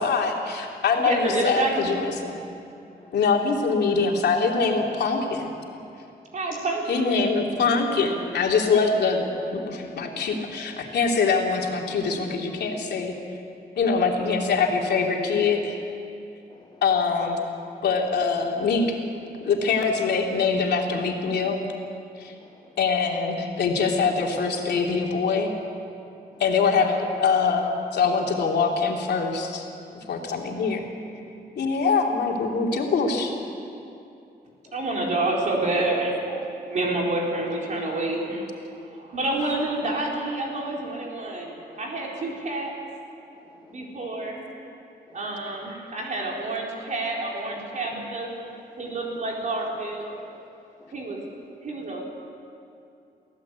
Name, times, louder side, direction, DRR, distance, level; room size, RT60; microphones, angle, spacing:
voice 1, 0.0-2.3 3.1-5.5 6.9-13.1 13.8-15.8 16.8-17.4 17.8-19.0 19.4-21.6 22.2-22.3 22.8-25.5 26.4-29.7 30.1-30.8 31.6-33.3, left 4 dB, 80° left, 0 dB, 3.1 m, -23 dB
voice 2, 1.0-1.9 3.3-3.5 6.3-7.1 34.7-36.4 36.7-38.6 38.9-42.8 43.7-44.5 45.1-48.3 48.8-50.1 50.9-51.2 51.6-52.0, right 2 dB, 45° right, -2 dB, 4.1 m, -28 dB
voice 3, 16.5-16.8 22.4-22.8 26.3-26.4 31.0-31.1 34.7-34.8 43.3-43.9 45.1-45.3 50.8-50.9, left 3 dB, 25° left, -3 dB, 2.2 m, -54 dB
24.5 x 16.0 x 8.3 m, 2.6 s
wide cardioid pair, 135°, 17 cm